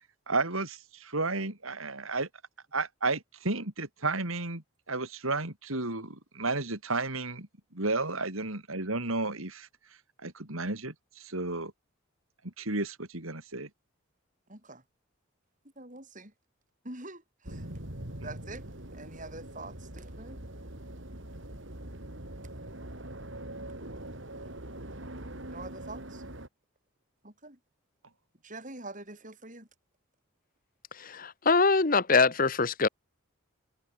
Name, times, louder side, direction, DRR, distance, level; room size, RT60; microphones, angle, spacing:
voice 1, 0.3-2.3 2.7-7.5 7.7-9.7 10.2-11.7 12.6-13.7, right 3 dB, 80° right, 4.4 m, -32 dB
voice 2, 14.5-14.8 15.8-16.3 16.8-17.7 18.2-20.5 25.5-26.2 27.2-27.6 28.4-29.7, right 2 dB, 40° right, 7.7 m, -45 dB
sound 1, 17.4-26.5, right 1 dB, 60° right, 4.2 m, -43 dB
voice 3, 31.0-32.9, left 4 dB, 40° left, 1.2 m, -24 dB
head